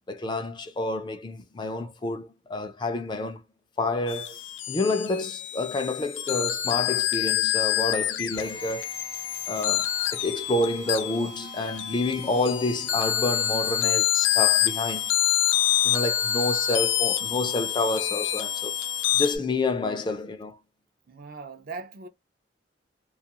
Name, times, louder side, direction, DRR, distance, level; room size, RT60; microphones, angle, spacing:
voice 1, 0.1-3.4 3.8-4.4 4.7-8.9 9.5-15.2 15.8-18.8 19.1-20.6, left 2 dB, 25° left, 0.3 m, -29 dB
sound 1, 4.1-19.4, left 12 dB, 80° left, 0.5 m, -27 dB
Drill, 8.3-19.3, right 2 dB, 70° right, 0.8 m, -46 dB
voice 2, 21.1-22.1, right 4 dB, 50° right, 0.4 m, -39 dB
2.3 x 2.3 x 2.8 m
head